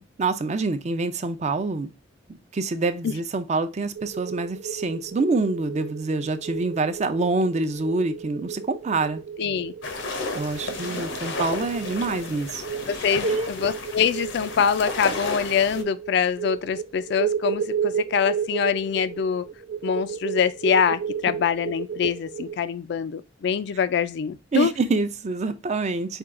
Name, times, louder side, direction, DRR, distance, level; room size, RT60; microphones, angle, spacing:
voice 1, 0.0-1.9 2.3-9.2 10.3-12.6 13.2-13.5 24.5-26.2, right 3 dB, 40° right, 0.4 m, -26 dB
sound 1, 3.9-22.6, right 7 dB, 85° right, 0.5 m, -33 dB
voice 2, 9.4-9.7 12.9-19.4 19.8-24.7, left 7 dB, 65° left, 0.3 m, -24 dB
sound 2, 9.8-15.8, left 3 dB, 80° left, 0.8 m, -33 dB
4.5 x 2.3 x 3.6 m
head